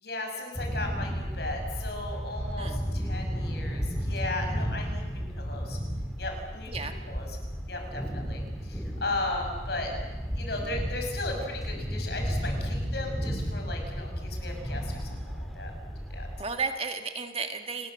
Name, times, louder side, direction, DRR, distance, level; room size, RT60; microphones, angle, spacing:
voice 1, 0.0-5.8 6.2-7.4 7.7-9.9 10.4-16.3, left 2 dB, 60° left, 3 dB, 6.1 m, -36 dB
sound 1, 0.5-16.4, equal, ahead, 2.8 m, -33 dB
voice 2, 16.4-17.9, right 5 dB, 30° right, 6 dB, 1.8 m, -33 dB
29.5 x 20.5 x 7.6 m, 1.3 s
head